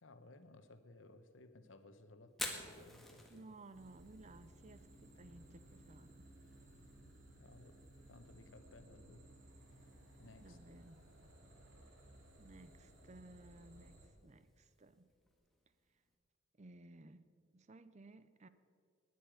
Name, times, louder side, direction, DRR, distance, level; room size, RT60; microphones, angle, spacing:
voice 1, 0.0-3.4 7.0-7.8 8.1-9.3 9.7-9.8 10.2-10.6, left 2 dB, 85° left, 9 dB, 1.0 m, -60 dB
Fire, 2.3-16.1, left 1 dB, ahead, 1.6 m, -54 dB
voice 2, 3.3-6.3 10.4-11.3 12.4-15.1 16.6-18.5, right 2 dB, 35° right, 13 dB, 0.6 m, -58 dB
sound 1, 3.7-14.1, right 1 dB, 75° right, 2.6 m, -60 dB
19.0 x 9.6 x 5.1 m, 2.3 s
head